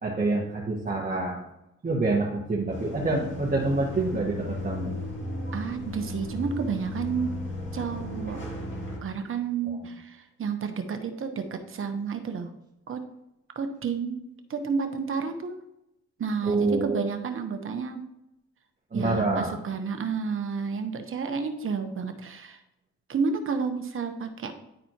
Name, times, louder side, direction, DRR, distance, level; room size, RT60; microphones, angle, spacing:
voice 1, 0.0-1.4 1.8-4.9 9.7-9.8 16.4-17.1 18.9-19.6, right 3 dB, 30° right, -3 dB, 1.4 m, -27 dB
sound 1, 2.7-9.0, left 1 dB, 40° left, 2.3 m, -35 dB
voice 2, 5.5-7.3 7.7-8.4 9.0-12.5 12.9-13.0 13.6-14.2 14.5-15.6 16.2-18.0 18.9-22.6 23.1-24.5, right 5 dB, 45° right, 7 dB, 1.0 m, -31 dB
10.5 x 4.1 x 2.9 m, 0.85 s
cardioid pair, 90°, 30 cm